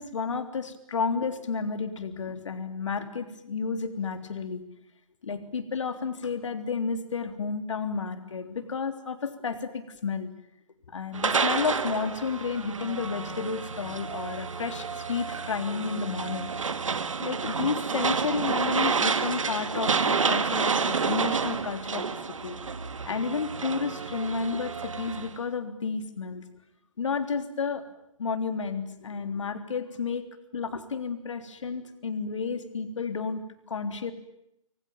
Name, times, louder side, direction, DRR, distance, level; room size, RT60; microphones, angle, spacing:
voice 1, 0.0-4.6 5.2-10.3 10.9-16.5 17.2-22.6 23.1-26.4 27.0-27.8 28.2-30.2 30.5-34.1, left 5 dB, 60° left, 8 dB, 3.5 m, -31 dB
sound 1, 11.1-25.3, right 5 dB, 65° right, 2.1 m, -29 dB
26.0 x 24.0 x 9.3 m, 0.81 s
figure-of-eight pair, 135°, 18 cm